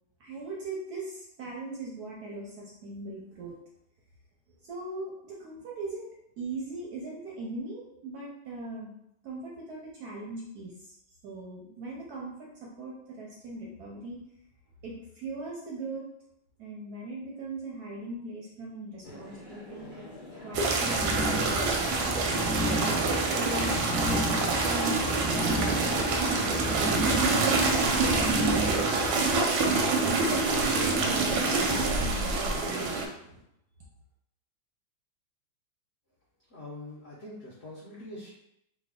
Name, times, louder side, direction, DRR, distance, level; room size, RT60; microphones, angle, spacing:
voice 1, 0.2-3.6 4.6-6.1 6.4-8.9 9.2-10.9 11.2-14.2 14.8-16.1 16.6-20.0 20.4-22.3 23.3-23.8 24.6-28.0 28.4-33.4, right 2 dB, 70° right, -3 dB, 0.9 m, -40 dB
sound 1, 19.0-31.8, left 1 dB, 40° left, 0.9 m, -44 dB
sound 2, 20.5-29.1, right 1 dB, 55° right, 0.3 m, -33 dB
sound 3, 20.5-33.1, right 3 dB, 90° right, 1.4 m, -26 dB
voice 2, 36.5-38.3, left 1 dB, 65° left, -8 dB, 0.6 m, -43 dB
3.2 x 2.2 x 3.5 m, 0.77 s
omnidirectional pair, 2.1 m